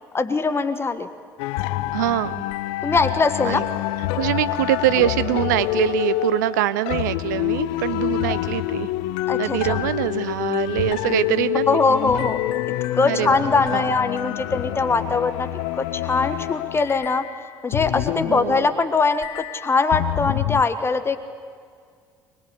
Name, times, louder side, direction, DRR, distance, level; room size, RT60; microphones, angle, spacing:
voice 1, 0.1-1.1 2.8-3.6 9.3-9.8 11.7-12.4 12.9-15.5 15.7-17.2 17.6-21.2, left 4 dB, 25° left, 9 dB, 1.3 m, -21 dB
sound 1, 1.4-18.8 19.1-20.6, left 16 dB, 65° left, 0.6 m, -27 dB
voice 2, 1.9-2.4 3.4-3.6 4.1-8.9 9.4-11.8 13.0-13.4 13.7-13.9 18.3-18.7, right 14 dB, 75° right, 15 dB, 0.7 m, -24 dB
25.0 x 21.0 x 8.3 m, 2.1 s
figure-of-eight pair, 55°, 10 cm